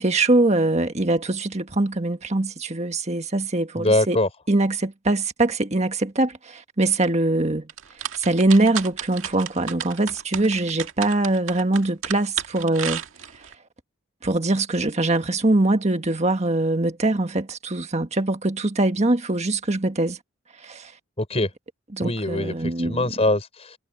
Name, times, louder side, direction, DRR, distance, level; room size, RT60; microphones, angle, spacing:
voice 1, 0.0-4.2 4.5-7.7 8.2-13.0 14.2-20.2 20.6-20.9 21.9-23.0, right 2 dB, 35° right, 1.6 m, -22 dB
voice 2, 3.8-4.3 21.2-21.5 22.0-23.8, left 2 dB, 30° left, 5.3 m, -23 dB
sound 1, 7.7-13.5, right 8 dB, 80° right, 1.9 m, -32 dB
head